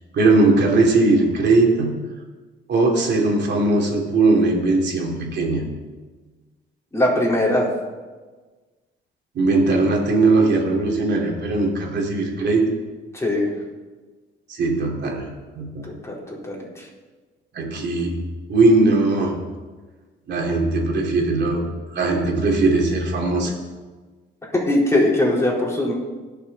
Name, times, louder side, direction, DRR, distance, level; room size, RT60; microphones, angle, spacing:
voice 1, 0.1-2.1 2.7-5.7 9.3-12.6 14.5-15.3 15.5-15.8 17.5-18.2 18.5-19.4 20.3-21.6 21.9-23.5, right 3 dB, 60° right, -1 dB, 3.1 m, -19 dB
voice 2, 6.9-7.7 13.1-13.5 15.8-16.9 24.5-25.9, left 1 dB, 15° left, -4 dB, 4.2 m, -21 dB
20.0 x 6.8 x 4.2 m, 1.3 s
cardioid pair, 90°, 20 cm